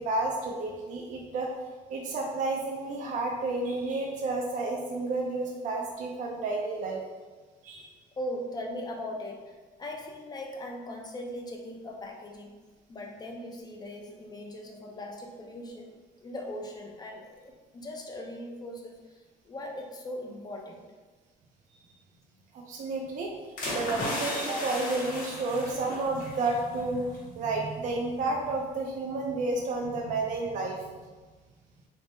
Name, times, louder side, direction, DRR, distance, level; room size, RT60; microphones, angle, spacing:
voice 1, 0.0-1.5 1.9-7.0 7.6-7.9 22.5-23.3 23.7-30.8, right 2 dB, 50° right, 0 dB, 0.4 m, -31 dB
voice 2, 8.2-12.5 12.9-15.9 16.2-20.8, left 1 dB, 25° left, 1 dB, 0.5 m, -39 dB
sound 1, 23.6-26.6 26.9-27.2, left 1 dB, 55° left, 1.1 m, -35 dB
3.4 x 2.0 x 2.6 m, 1.3 s
cardioid pair, 110°, 17 cm